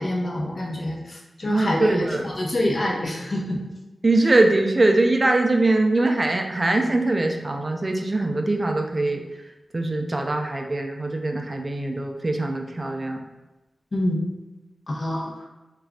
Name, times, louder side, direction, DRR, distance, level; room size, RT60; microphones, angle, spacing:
voice 1, 0.0-3.6 13.9-14.2 14.9-15.4, left 1 dB, 55° left, -1 dB, 0.6 m, -26 dB
voice 2, 1.5-2.2 4.0-9.2 9.7-13.2, right 2 dB, 40° right, 3 dB, 0.4 m, -22 dB
2.4 x 2.3 x 3.4 m, 1.1 s
cardioid pair, 40°, 0 cm